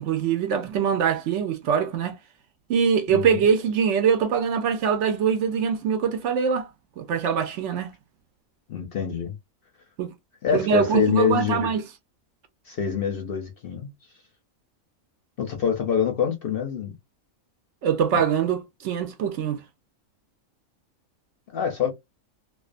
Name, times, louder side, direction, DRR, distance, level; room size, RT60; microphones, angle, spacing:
voice 1, 0.0-2.2 2.7-6.7 7.0-7.9 10.0-10.1 10.5-11.8 17.8-19.6, right 7 dB, 70° right, 0.8 m, -23 dB
voice 2, 3.1-3.5 8.7-9.4 10.4-11.7 12.7-13.9 15.4-16.9 18.1-18.2 21.5-21.9, left 7 dB, 60° left, 0.6 m, -25 dB
2.4 x 2.3 x 2.4 m
omnidirectional pair, 1.4 m